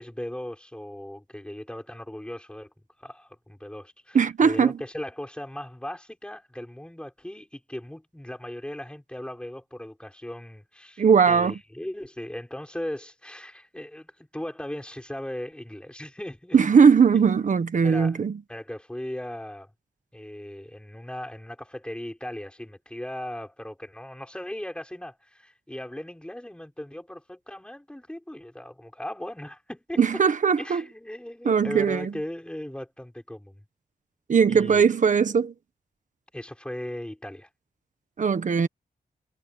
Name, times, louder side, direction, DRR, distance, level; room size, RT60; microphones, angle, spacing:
voice 1, 0.0-2.7 3.0-16.6 17.8-18.2 18.5-19.7 20.1-30.0 30.6-33.6 34.5-34.8 36.3-37.5, left 1 dB, 5° left, 5.9 m, -38 dB
voice 2, 4.1-4.8 11.0-11.5 16.5-18.4 30.0-30.8 31.4-32.1 34.3-35.5 38.2-38.7, right 6 dB, 50° right, 1.4 m, -19 dB
wide cardioid pair, 130°, 16 cm